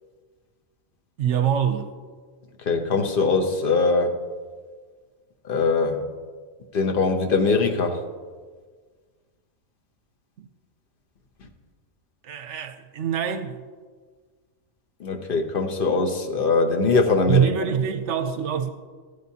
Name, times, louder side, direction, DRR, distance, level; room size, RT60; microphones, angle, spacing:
voice 1, 1.2-1.9 10.4-10.5 12.2-13.6 17.3-18.7, right 8 dB, 65° right, 0.9 m, -24 dB
voice 2, 2.7-4.2 5.5-6.0 6.7-8.0 15.0-17.5, left 4 dB, 45° left, 0.9 m, -22 dB
13.0 x 11.5 x 2.8 m
omnidirectional pair, 1.4 m